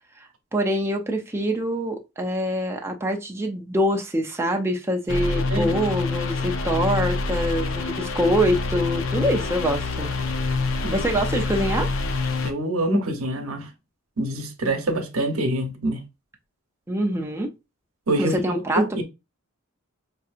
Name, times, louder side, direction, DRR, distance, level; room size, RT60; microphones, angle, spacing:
voice 1, 0.5-10.1 10.9-11.9 16.9-17.5 18.2-19.0, equal, 10° right, 0.5 m, -25 dB
sound 1, 5.1-12.5, left 3 dB, 65° left, 0.6 m, -26 dB
voice 2, 12.4-13.7 14.2-16.0 18.1-19.0, right 1 dB, 90° right, 0.9 m, -25 dB
5.1 x 2.7 x 2.4 m
head